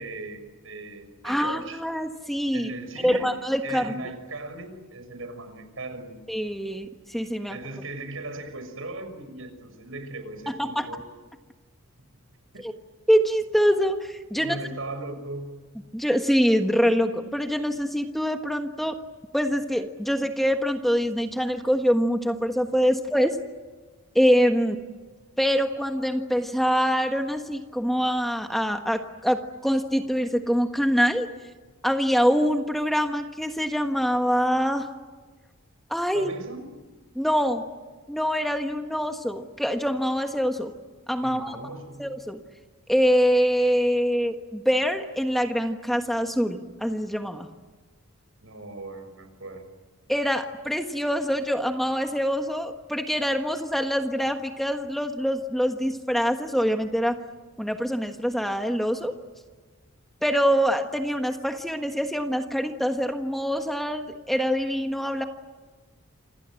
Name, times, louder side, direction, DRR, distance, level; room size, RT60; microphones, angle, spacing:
voice 1, 0.0-1.8 2.5-3.3 3.6-6.2 7.5-11.0 12.5-12.6 14.4-15.5 36.1-36.7 41.2-42.1 48.4-49.7, right 2 dB, 70° right, 8 dB, 6.3 m, -38 dB
voice 2, 1.2-2.7 3.0-3.9 6.3-7.6 10.5-10.8 12.6-12.7 13.1-14.6 15.9-19.0 19.3-23.4 24.1-24.8 25.4-31.3 31.8-34.9 35.9-36.3 37.1-37.6 38.1-40.7 41.1-41.6 42.0-42.4 42.9-47.5 50.1-57.2 57.6-59.2 60.2-65.2, equal, ahead, 5 dB, 1.4 m, -24 dB
28.5 x 27.5 x 7.7 m, 1.3 s
head